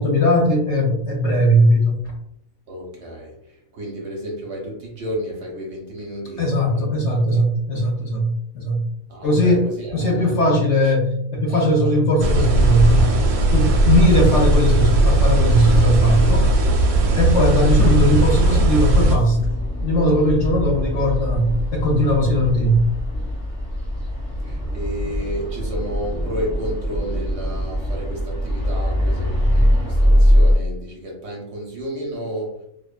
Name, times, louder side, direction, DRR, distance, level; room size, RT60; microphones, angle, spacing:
voice 1, 0.0-2.1 6.4-8.8 9.2-13.2 13.5-16.5 17.2-19.5 19.8-22.9, equal, 65° left, 0 dB, 0.8 m, -19 dB
voice 2, 2.7-3.4 3.7-6.9 7.3-7.4 9.1-10.6 11.5-11.9 24.4-32.7, equal, 65° right, -1 dB, 0.8 m, -32 dB
sound 1, 12.2-19.2, right 2 dB, 90° right, 1.0 m, -17 dB
sound 2, 16.2-30.6, equal, 5° right, 0.8 m, -22 dB
2.5 x 2.2 x 2.3 m, 0.73 s
omnidirectional pair, 1.5 m